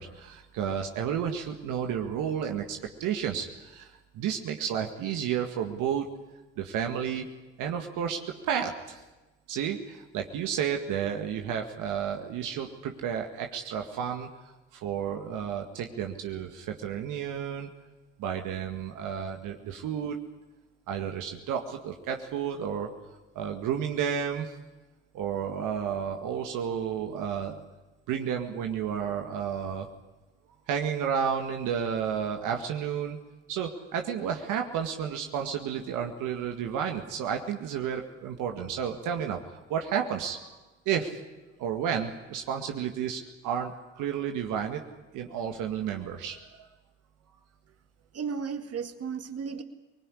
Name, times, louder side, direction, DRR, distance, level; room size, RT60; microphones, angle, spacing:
voice 1, 0.0-6.1 6.6-7.3 7.6-8.2 8.4-9.0 9.5-17.7 18.2-20.2 20.9-22.9 23.4-24.6 25.1-27.6 28.1-29.9 30.7-33.2 33.5-40.6 40.9-41.2 41.6-44.8 45.1-46.4, right 8 dB, 70° right, 4 dB, 2.0 m, -31 dB
voice 2, 48.1-49.6, right 6 dB, 50° right, 8 dB, 2.2 m, -34 dB
23.0 x 20.0 x 9.9 m, 1.1 s
hypercardioid pair, 60°, 32 cm